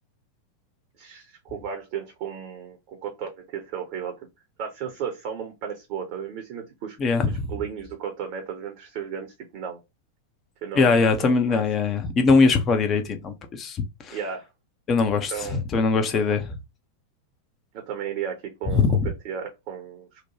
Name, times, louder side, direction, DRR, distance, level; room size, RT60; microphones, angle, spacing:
voice 1, 1.0-4.3 4.6-7.0 7.2-9.8 10.6-11.6 14.1-14.5 15.3-15.6 16.3-16.4 17.9-20.2, right 7 dB, 45° right, 0.7 m, -34 dB
voice 2, 7.0-7.5 10.7-14.2 14.9-16.5 18.7-19.1, left 4 dB, 25° left, 0.6 m, -21 dB
2.9 x 2.2 x 2.8 m
figure-of-eight pair, 90°, 0 cm